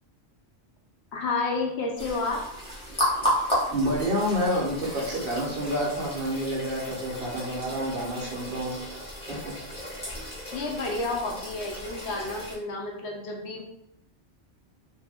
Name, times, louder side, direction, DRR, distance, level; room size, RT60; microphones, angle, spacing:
voice 1, 1.1-2.4 10.5-13.6, left 3 dB, 80° left, 1 dB, 0.9 m, -30 dB
sound 1, 2.0-12.6, equal, 5° left, 0.9 m, -33 dB
voice 2, 3.7-8.8 9.3-9.5, equal, 60° right, -3 dB, 1.0 m, -28 dB
2.7 x 2.1 x 3.5 m, 0.79 s
omnidirectional pair, 1.1 m